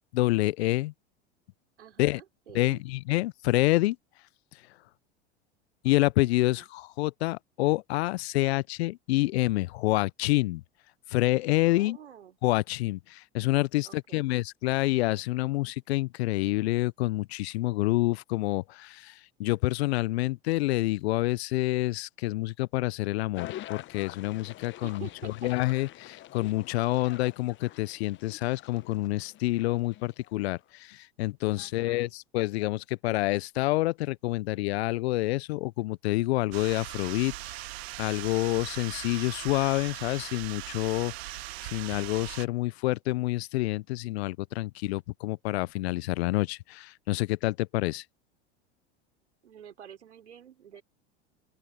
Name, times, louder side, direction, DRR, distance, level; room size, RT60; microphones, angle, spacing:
voice 1, 0.1-0.9 2.0-2.2 2.5-4.0 5.8-10.6 11.1-12.0 12.4-37.7 38.0-48.0, left 19 dB, 70° left, 0.7 m, -28 dB
voice 2, 1.8-2.8 6.4-6.7 11.7-12.4 13.8-14.3 24.8-25.5 31.6-32.1 49.4-50.8, right 9 dB, 85° right, 4.2 m, -48 dB
sound 1, 23.3-30.6, left 14 dB, 35° left, 0.9 m, -46 dB
sound 2, 36.5-42.5, right 19 dB, 65° right, 1.2 m, -40 dB
open air
hypercardioid pair, 90°, 34 cm